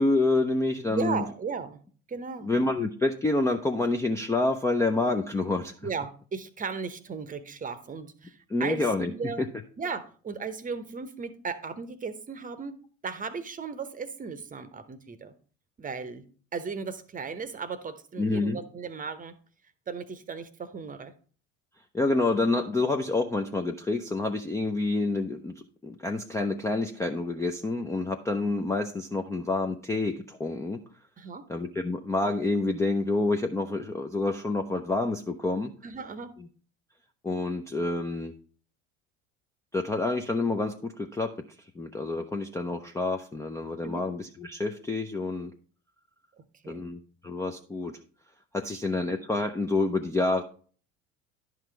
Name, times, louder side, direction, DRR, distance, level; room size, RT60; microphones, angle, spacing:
voice 1, 0.0-1.2 2.4-5.7 8.5-9.1 18.2-18.6 21.9-30.8 31.5-35.7 37.2-38.3 39.7-41.3 41.8-45.5 46.7-47.9 48.5-50.4, left 2 dB, 10° left, 4 dB, 0.4 m, -28 dB
voice 2, 0.9-1.8 2.1-2.5 5.8-9.4 9.8-12.7 13.0-15.3 15.8-16.3 16.5-19.4 19.9-21.1 31.2-31.4 35.8-36.3 43.8-44.0 46.4-46.9 48.9-49.1, right 5 dB, 20° right, 13 dB, 0.8 m, -36 dB
10.5 x 5.9 x 3.3 m, 0.42 s
figure-of-eight pair, 65°, 38 cm